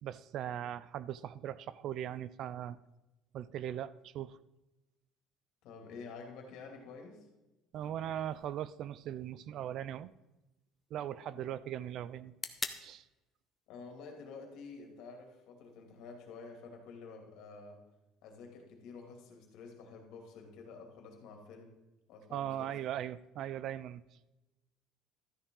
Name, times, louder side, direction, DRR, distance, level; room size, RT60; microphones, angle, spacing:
voice 1, 0.0-2.8 3.3-4.4 7.7-10.1 10.9-12.3 12.8-13.0 22.3-24.0, right 11 dB, 50° right, 17 dB, 0.4 m, -39 dB
voice 2, 5.6-7.3 11.2-11.4 13.7-17.8 18.2-21.8 22.1-22.7, left 4 dB, 65° left, 2 dB, 2.6 m, -50 dB
sound 1, 8.3-16.3, left 3 dB, 10° left, 0.7 m, -49 dB
13.0 x 9.8 x 3.9 m, 1.0 s
cardioid pair, 155°, 0 cm